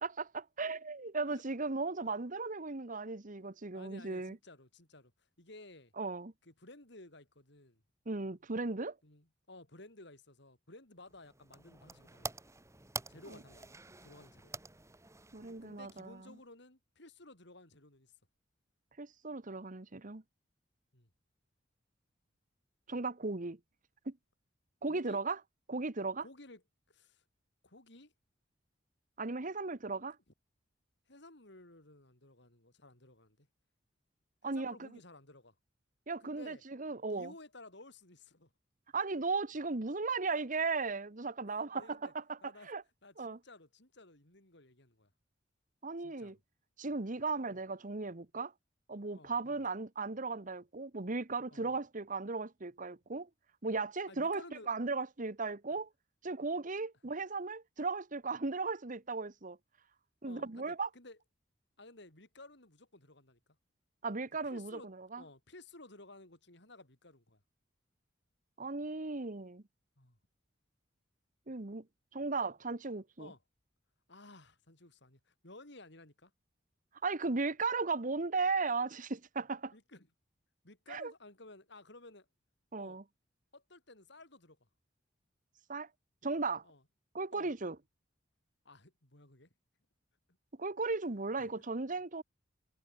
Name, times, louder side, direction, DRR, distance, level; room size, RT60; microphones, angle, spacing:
voice 1, 0.0-4.4 6.0-6.3 8.1-9.0 15.3-16.2 19.0-20.2 22.9-23.6 24.1-24.2 24.8-25.4 25.7-26.2 29.2-30.1 34.4-34.9 36.1-37.3 38.9-42.4 42.6-42.8 43.2-43.4 45.8-46.4 46.8-48.5 48.9-53.3 53.6-55.9 56.2-59.6 60.2-60.9 64.0-65.2 68.6-69.6 71.5-71.8 72.1-73.3 77.0-79.7 80.9-81.1 82.7-83.0 85.7-85.9 86.2-86.6 87.1-87.8 90.6-92.2, right 3 dB, 45° right, 1.2 m, -36 dB
voice 2, 3.7-5.1 5.4-5.9 6.4-7.8 9.0-12.3 13.1-13.7 14.0-14.5 15.6-18.1 20.9-21.1 24.9-25.2 26.2-27.2 27.6-28.1 29.9-30.0 31.1-33.5 34.4-35.5 36.2-36.6 37.2-38.5 41.4-42.1 42.4-42.7 43.0-45.1 46.0-46.3 49.1-49.6 51.5-51.8 54.1-54.7 60.2-61.2 61.8-63.4 64.5-67.4 70.0-70.2 73.2-73.4 74.1-76.3 79.7-80.1 80.6-82.3 82.8-83.0 83.5-84.7 86.6-86.8 87.3-87.5 88.7-89.5 91.4-91.5, left 2 dB, 65° left, 5.4 m, -55 dB
sound 1, 11.0-16.4, right 3 dB, 15° right, 1.7 m, -48 dB
head